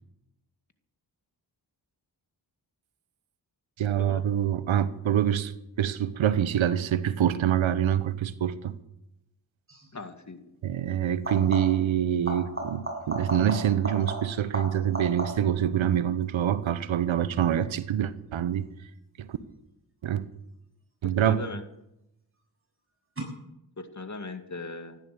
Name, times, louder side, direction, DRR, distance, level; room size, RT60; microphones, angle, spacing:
voice 1, 3.8-5.5 5.8-8.8 10.6-18.6 19.2-19.4 20.0-20.3 21.0-21.4, right 10 dB, 85° right, 0.9 m, -25 dB
sound 1, 9.7-9.9 11.1-11.9 12.2-15.6 21.1-21.6 23.2-23.3, right 2 dB, 30° right, 6.9 m, -36 dB
voice 2, 9.9-10.4 21.0-21.6 23.8-25.0, left 3 dB, 40° left, 2.2 m, -39 dB
14.5 x 12.0 x 6.9 m
cardioid pair, 45°, 46 cm